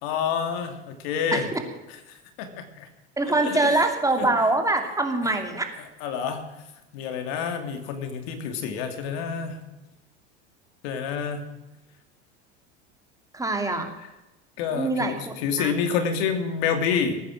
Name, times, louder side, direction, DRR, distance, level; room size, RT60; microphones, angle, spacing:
voice 1, 0.0-1.5 2.4-2.9 3.4-3.7 4.2-4.3 6.0-6.4 6.9-9.7 10.8-11.4 14.6-17.2, left 6 dB, 70° left, 7 dB, 2.6 m, -28 dB
voice 2, 1.3-1.6 3.2-5.7 13.3-13.9 14.7-15.7, right 2 dB, 10° right, 4 dB, 2.5 m, -24 dB
20.0 x 9.3 x 6.4 m, 1.0 s
supercardioid pair, 100°, 33 cm